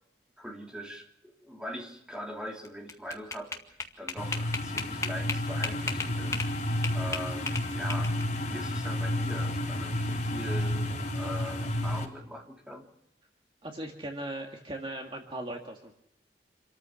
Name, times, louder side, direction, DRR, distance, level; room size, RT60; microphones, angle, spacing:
voice 1, 0.4-6.5 6.9-8.2 8.5-12.9, equal, 5° right, 0 dB, 3.0 m, -41 dB
sound 1, 2.6-6.5 6.8-8.4, left 3 dB, 15° left, 1.9 m, -34 dB
sound 2, 4.2-12.0, left 1 dB, 40° left, 4.1 m, -31 dB
voice 2, 13.6-16.0, right 1 dB, 30° right, 2 dB, 1.9 m, -38 dB
28.0 x 14.0 x 7.1 m, 0.82 s
head